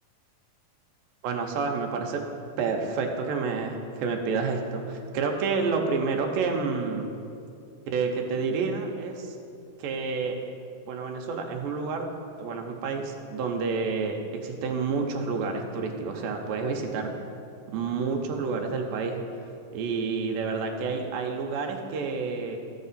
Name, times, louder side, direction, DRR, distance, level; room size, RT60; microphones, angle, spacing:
voice 1, 1.2-2.2 2.6-7.1 7.9-9.3 9.8-10.4 10.9-12.1 12.4-14.2 14.4-17.1 17.7-19.2 19.7-22.6, right 4 dB, 85° right, 2 dB, 2.4 m, -29 dB
13.0 x 6.4 x 4.1 m, 2.5 s
omnidirectional pair, 4.1 m